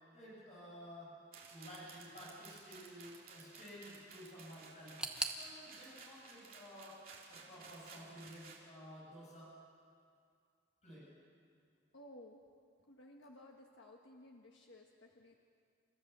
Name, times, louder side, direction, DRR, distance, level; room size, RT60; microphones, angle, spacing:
voice 1, 0.1-1.1 1.5-5.0 5.4-7.0 7.3-9.6 10.8-11.1, equal, 35° left, -5 dB, 7.1 m, -53 dB
sound 1, 1.3-8.6, right 5 dB, 50° right, 3.0 m, -56 dB
sound 2, 5.0-7.9 8.1-8.9 9.2-9.3 10.2-10.3, right 2 dB, 5° right, 1.0 m, -45 dB
voice 2, 11.9-12.4 12.8-15.3, left 1 dB, 85° left, 0 dB, 1.4 m, -57 dB
29.5 x 14.0 x 6.8 m, 2.3 s
head